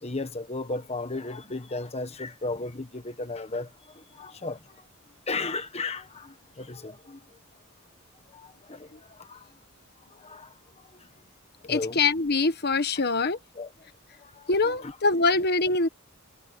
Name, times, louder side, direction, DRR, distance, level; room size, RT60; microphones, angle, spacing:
voice 1, 0.0-3.7 3.9-4.6 5.3-7.2 8.3-9.5 10.1-10.5 11.7-12.0 13.6-13.7 14.2-14.9, left 3 dB, 30° left, 1.3 m, -35 dB
voice 2, 11.7-13.4 14.5-15.9, left 3 dB, 50° left, 1.3 m, -24 dB
head